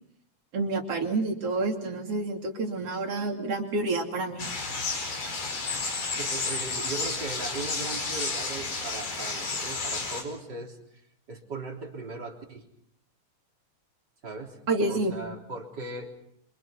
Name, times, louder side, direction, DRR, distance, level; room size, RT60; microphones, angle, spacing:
voice 1, 0.5-4.5 14.7-15.2, right 2 dB, 50° right, 3 dB, 3.6 m, -28 dB
sound 1, 4.4-10.2, left 3 dB, 80° left, 6.2 m, -31 dB
voice 2, 6.0-10.8 11.3-12.6 14.2-14.6 14.9-16.1, right 3 dB, 30° right, 1 dB, 4.1 m, -38 dB
27.5 x 25.5 x 5.9 m, 0.71 s
omnidirectional pair, 3.7 m